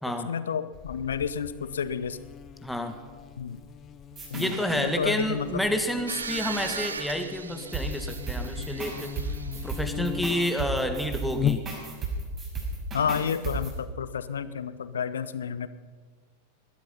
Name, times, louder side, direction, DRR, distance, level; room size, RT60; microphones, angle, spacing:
voice 1, 0.2-2.2 3.4-3.6 4.3-5.5 12.9-15.7, left 7 dB, 65° left, 14 dB, 0.8 m, -30 dB
Buzz, 0.7-12.1, left 10 dB, 30° left, 0.5 m, -38 dB
voice 2, 2.6-3.0 4.4-9.1 9.6-11.6, equal, ahead, 6 dB, 1.7 m, -29 dB
sound 1, 4.1-4.8 7.7-13.7, right 3 dB, 25° right, 5.9 m, -34 dB
sound 2, 6.1-9.9, right 5 dB, 70° right, 0.8 m, -38 dB
21.0 x 12.5 x 5.6 m, 1.5 s
figure-of-eight pair, 90°, 0 cm